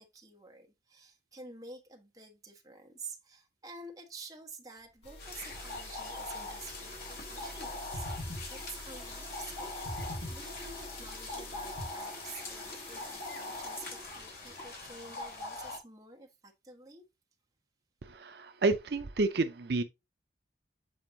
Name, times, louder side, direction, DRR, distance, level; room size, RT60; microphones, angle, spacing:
voice 1, 0.0-17.0, right 3 dB, 20° right, 1.3 m, -50 dB
sound 1, 4.8-15.1, left 2 dB, 30° left, 1.6 m, -49 dB
sound 2, 5.0-11.9, equal, 85° left, 3.8 m, -45 dB
sound 3, 5.2-15.8, left 2 dB, 55° left, 3.4 m, -43 dB
voice 2, 18.0-19.8, right 3 dB, 65° right, 0.5 m, -30 dB
7.8 x 4.4 x 2.7 m
head